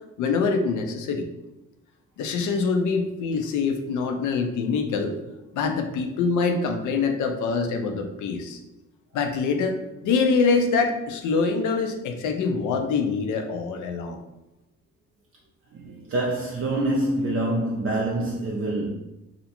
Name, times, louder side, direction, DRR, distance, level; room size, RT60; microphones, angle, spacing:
voice 1, 0.2-1.3 2.2-5.1 5.5-8.6 9.1-9.8 10.0-14.2, left 4 dB, 80° left, 0.5 m, -24 dB
voice 2, 15.7-18.9, right 1 dB, 45° right, 0.4 m, -26 dB
2.5 x 2.1 x 2.8 m
cardioid pair, 90°, 30 cm